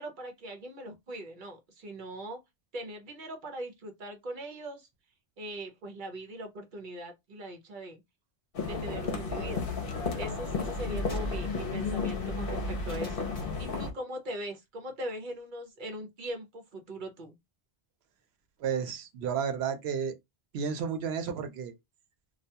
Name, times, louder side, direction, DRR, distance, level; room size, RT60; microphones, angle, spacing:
voice 1, 0.0-2.4 2.7-4.9 5.4-8.0 8.6-9.7 10.1-17.4, right 1 dB, 55° right, 0.8 m, -40 dB
sound 1, 8.5-13.9, left 3 dB, 65° left, 0.9 m, -33 dB
sound 2, 11.1-13.7, left 1 dB, 20° left, 1.0 m, -53 dB
voice 2, 18.6-20.1 20.5-21.7, right 7 dB, 85° right, 0.9 m, -32 dB
2.3 x 2.2 x 2.7 m
omnidirectional pair, 1.0 m